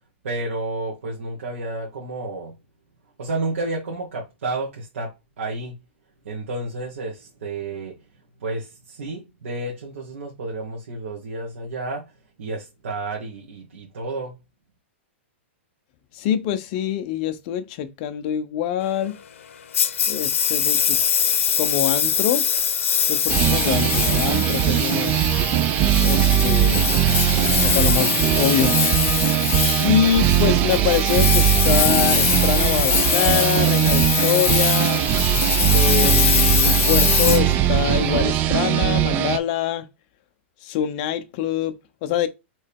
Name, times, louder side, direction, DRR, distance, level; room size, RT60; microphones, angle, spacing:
voice 1, 0.2-2.6 3.2-5.8 6.2-8.0 8.4-12.1 12.4-14.4, right 2 dB, 85° right, 1.4 m, -31 dB
voice 2, 16.1-19.2 20.1-21.0 21.6-22.5 23.1-25.2 26.0-26.9 27.6-28.8 29.8-35.1 35.7-39.9 40.6-42.3, left 10 dB, 40° left, 0.6 m, -24 dB
Engine, 19.7-38.2, left 8 dB, 90° left, 0.6 m, -23 dB
sound 1, 23.3-39.4, right 12 dB, 25° right, 0.3 m, -20 dB
4.4 x 3.1 x 3.5 m
hypercardioid pair, 160°, 7 cm